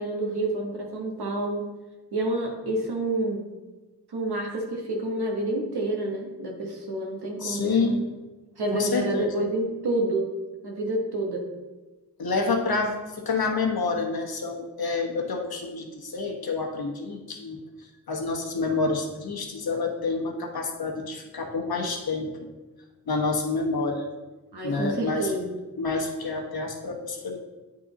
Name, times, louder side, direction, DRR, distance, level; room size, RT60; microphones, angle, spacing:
voice 1, 0.0-1.7 2.1-3.5 4.1-8.1 8.6-10.3 10.6-11.5 12.4-12.6 24.5-25.6, right 1 dB, 85° right, 0 dB, 1.3 m, -28 dB
voice 2, 7.4-8.0 8.7-9.4 12.2-22.5 23.1-24.1 24.6-25.3 25.8-27.4, left 4 dB, 70° left, 2 dB, 1.1 m, -28 dB
8.3 x 3.8 x 4.0 m, 1.2 s
cardioid pair, 50°, 38 cm